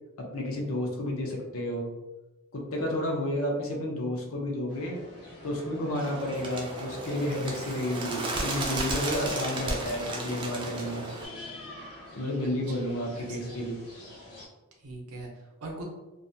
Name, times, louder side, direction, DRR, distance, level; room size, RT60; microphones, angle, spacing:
voice 1, 0.2-1.9 2.5-5.0 5.4-11.0 12.1-13.8, left 1 dB, 65° left, 0 dB, 0.6 m, -31 dB
sound 1, 4.7-14.5, left 2 dB, 85° left, 1.0 m, -47 dB
Bird, 5.9-11.3, right 2 dB, 20° right, 0.3 m, -34 dB
voice 2, 12.4-13.6 14.8-15.8, right 2 dB, 80° right, 0 dB, 0.6 m, -43 dB
2.4 x 2.1 x 2.6 m, 1.1 s
head